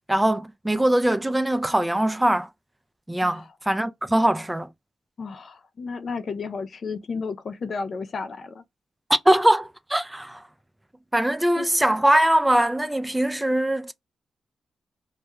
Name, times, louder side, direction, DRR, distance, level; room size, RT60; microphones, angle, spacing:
voice 1, 0.1-2.5 3.1-4.7 9.1-10.4 11.1-13.9, right 1 dB, 10° right, 0.4 m, -22 dB
voice 2, 5.2-8.6 11.6-11.7, left 4 dB, 60° left, 0.4 m, -33 dB
2.2 x 2.2 x 2.8 m
cardioid pair, 55°, 0 cm